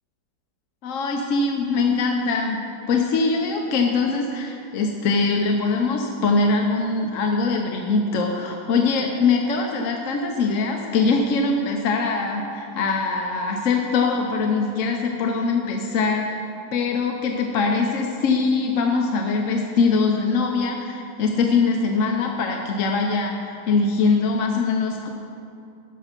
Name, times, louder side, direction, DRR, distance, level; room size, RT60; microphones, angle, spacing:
voice 1, 0.8-16.4 16.7-25.1, left 4 dB, 60° left, 2 dB, 0.9 m, -22 dB
12.5 x 5.5 x 5.8 m, 2.6 s
omnidirectional pair, 1.8 m